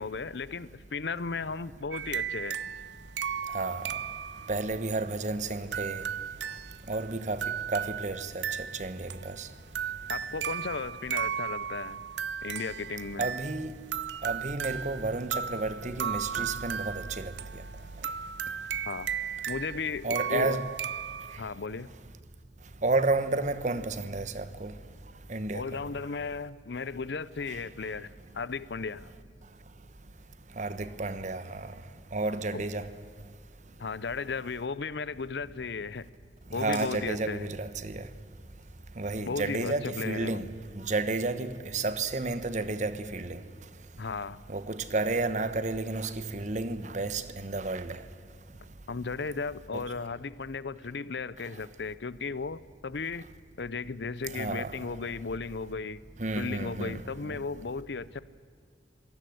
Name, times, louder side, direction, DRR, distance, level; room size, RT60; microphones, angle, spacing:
voice 1, 0.0-2.6 10.1-12.0 12.4-13.2 18.8-19.1 19.5-20.7 21.4-21.9 25.5-28.1 28.3-29.1 32.5-32.6 33.8-36.1 36.5-37.5 39.2-40.4 44.0-44.4 48.9-53.2 53.6-56.0 56.4-58.2, left 4 dB, 75° left, 0.7 m, -35 dB
sound 1, 1.9-21.4, right 8 dB, 85° right, 0.8 m, -36 dB
voice 2, 3.5-3.9 4.5-6.0 6.9-7.4 7.7-9.5 13.2-13.8 14.2-17.3 20.0-20.6 22.8-24.7 25.3-25.6 27.5-27.6 30.6-31.7 32.1-32.9 36.5-38.1 39.0-40.5 40.7-43.4 44.5-48.0 49.7-49.8 54.3-54.7 56.2-57.4, right 3 dB, 45° right, 1.1 m, -31 dB
sound 2, 34.4-41.2, left 3 dB, 25° left, 5.7 m, -57 dB
26.0 x 18.0 x 7.9 m
head